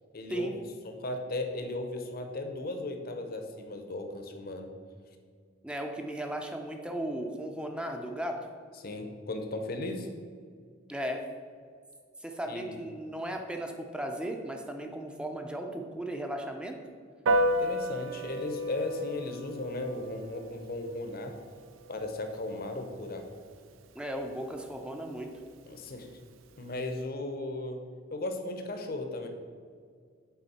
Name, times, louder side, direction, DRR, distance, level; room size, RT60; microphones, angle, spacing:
voice 1, 0.1-0.5 0.8-4.7 8.8-10.1 12.5-12.8 17.6-21.4 21.9-23.3 25.7-26.1 26.6-27.8 28.1-29.3, left 2 dB, 50° left, 4 dB, 0.7 m, -36 dB
voice 2, 5.6-8.5 10.9-11.2 12.2-16.8 23.9-25.3, right 1 dB, 5° right, 3 dB, 0.5 m, -36 dB
Piano, 17.3-27.0, equal, 85° right, 0.4 m, -35 dB
8.1 x 4.2 x 4.2 m, 2.1 s
head